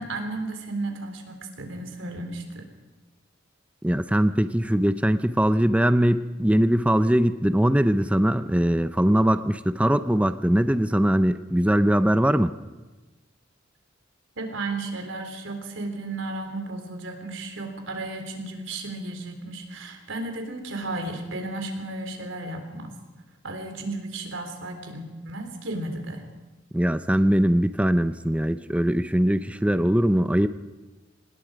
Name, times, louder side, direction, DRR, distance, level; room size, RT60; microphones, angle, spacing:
voice 1, 0.0-2.7 14.4-22.9 23.4-26.2, right 2 dB, 75° right, 5 dB, 3.8 m, -34 dB
voice 2, 3.8-12.5 26.7-30.5, equal, 5° right, 11 dB, 0.5 m, -21 dB
26.0 x 19.5 x 5.1 m, 1.2 s
head